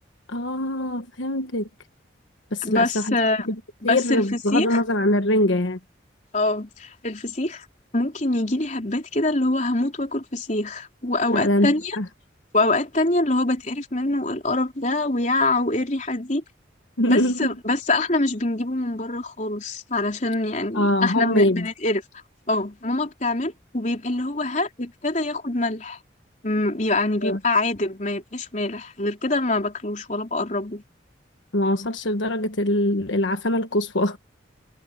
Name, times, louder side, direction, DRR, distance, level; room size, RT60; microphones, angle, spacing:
voice 1, 0.3-1.7 2.5-3.1 3.5-3.6 3.8-5.8 11.3-12.1 17.0-17.5 20.7-21.7 27.2-27.4 31.5-34.2, left 1 dB, 80° left, 1.3 m, -23 dB
voice 2, 2.6-3.5 3.8-4.2 4.5-4.8 6.3-7.7 7.9-12.0 12.5-16.4 17.1-22.0 22.5-26.0 26.4-30.8, left 2 dB, 40° left, 3.9 m, -24 dB
head